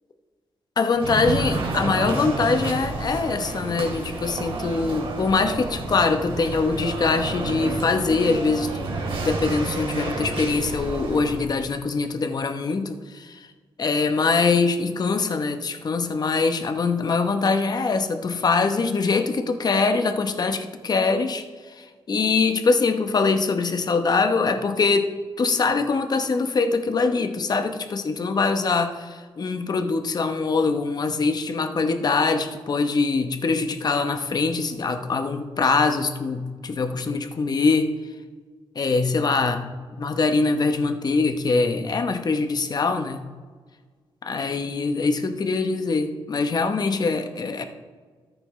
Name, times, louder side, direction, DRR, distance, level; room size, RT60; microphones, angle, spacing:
voice 1, 0.8-8.9 9.2-13.5 13.8-25.1 25.4-37.9 38.7-39.7 40.0-43.2 44.2-47.6, left 4 dB, 45° left, 8 dB, 0.9 m, -23 dB
sound 1, 1.0-11.6, right 2 dB, 70° right, 2.4 m, -30 dB
13.5 x 8.3 x 3.2 m, 1.5 s
cardioid pair, 105°, 10 cm